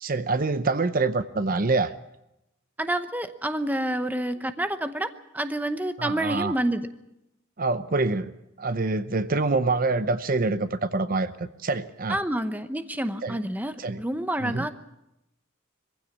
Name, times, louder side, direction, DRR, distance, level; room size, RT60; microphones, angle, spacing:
voice 1, 0.0-1.9 6.0-6.5 7.6-8.3 8.6-12.2 13.2-13.4 13.8-14.0 14.4-14.6, right 3 dB, 45° right, 12 dB, 0.7 m, -26 dB
voice 2, 2.8-6.9 12.1-14.7, right 1 dB, 10° right, 9 dB, 0.9 m, -28 dB
22.5 x 15.5 x 8.4 m, 0.87 s
head